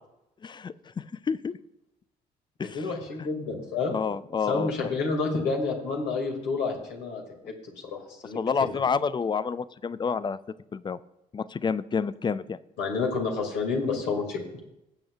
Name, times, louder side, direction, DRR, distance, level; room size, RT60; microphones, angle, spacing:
voice 1, 0.4-1.6 2.6-2.9 3.9-4.9 8.3-10.4 10.7-11.0 11.3-12.6, left 5 dB, 20° left, 17 dB, 0.5 m, -29 dB
voice 2, 2.7-4.0 4.5-7.5 7.8-8.8 12.8-14.4, left 4 dB, 60° left, 1 dB, 2.3 m, -29 dB
18.5 x 7.7 x 2.4 m, 0.89 s
figure-of-eight pair, 50°, 20 cm